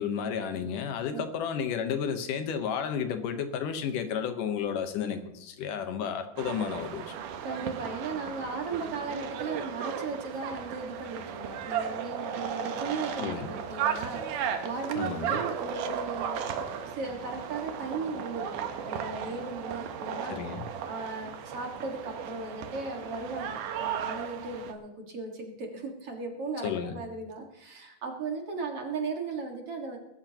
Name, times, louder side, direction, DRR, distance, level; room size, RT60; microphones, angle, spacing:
voice 1, 0.0-7.1 13.2-13.5 15.0-15.4 20.3-20.6 26.6-27.0, left 7 dB, 80° left, 7 dB, 2.7 m, -32 dB
sound 1, 6.4-24.7, right 8 dB, 80° right, 2.6 m, -35 dB
voice 2, 7.4-16.4 16.8-20.4 20.7-30.0, right 4 dB, 50° right, 2 dB, 2.6 m, -37 dB
22.0 x 13.0 x 3.0 m, 0.88 s
omnidirectional pair, 3.7 m